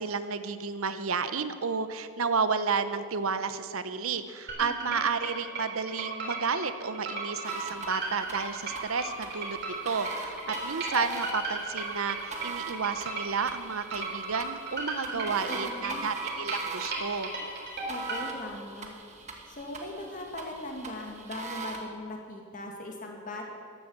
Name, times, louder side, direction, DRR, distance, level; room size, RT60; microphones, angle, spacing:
voice 1, 0.0-9.6 9.8-17.3, right 5 dB, 80° right, 11 dB, 0.8 m, -31 dB
sound 1, 4.5-18.2, right 3 dB, 50° right, 3.6 m, -35 dB
voice 2, 4.6-5.0 15.1-16.1 17.9-19.0 19.5-23.4, left 1 dB, 35° left, 1 dB, 2.2 m, -40 dB
sound 2, 7.4-21.8, right 3 dB, 30° right, 1.4 m, -41 dB
13.0 x 12.0 x 7.3 m, 2.2 s
head